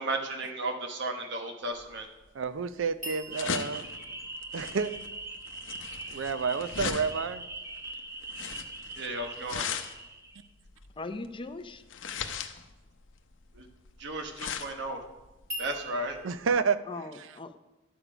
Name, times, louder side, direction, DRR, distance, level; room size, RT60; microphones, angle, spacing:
voice 1, 0.0-2.1 9.0-9.7 13.5-13.7 14.0-15.0 15.6-16.2, right 2 dB, 65° right, 4 dB, 1.3 m, -34 dB
sound 1, 1.8-16.6, left 6 dB, 75° left, 0.7 m, -39 dB
voice 2, 2.3-3.8 4.5-4.9 6.1-7.4 16.2-16.8 17.2-17.3, right 5 dB, 85° right, 13 dB, 0.5 m, -29 dB
sound 2, 3.0-6.1 15.5-16.3, right 1 dB, 40° right, 2.9 m, -43 dB
sound 3, 3.3-10.5, right 2 dB, 15° right, 0.7 m, -42 dB
voice 3, 11.0-11.8 16.9-17.6, left 3 dB, 25° left, 9 dB, 0.6 m, -39 dB
11.0 x 7.0 x 5.0 m, 1.1 s
head